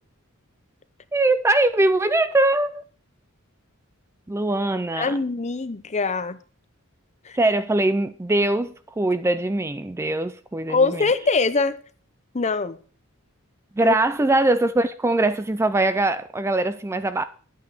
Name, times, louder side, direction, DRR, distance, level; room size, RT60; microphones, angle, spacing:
voice 1, 1.1-2.8 4.3-5.2 7.3-11.1 13.8-17.2, right 2 dB, 10° right, 0.4 m, -22 dB
voice 2, 5.0-6.4 7.3-7.4 10.7-11.8 12.3-12.8 13.8-13.9, left 4 dB, 30° left, 0.7 m, -23 dB
11.0 x 8.6 x 5.0 m
head